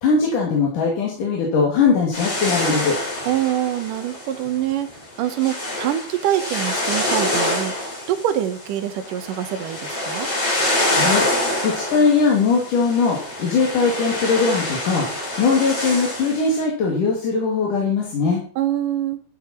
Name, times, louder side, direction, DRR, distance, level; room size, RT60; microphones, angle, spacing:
voice 1, 0.0-3.0 10.9-11.3 11.6-15.1 15.4-18.4, left 4 dB, 80° left, -2 dB, 4.2 m, -20 dB
sound 1, 2.1-16.6, left 1 dB, 50° left, 5.9 m, -26 dB
voice 2, 3.3-4.9 5.2-7.8 8.1-10.3 18.6-19.2, right 11 dB, 85° right, 9 dB, 2.8 m, -24 dB
13.0 x 11.0 x 4.5 m, 0.40 s
omnidirectional pair, 3.6 m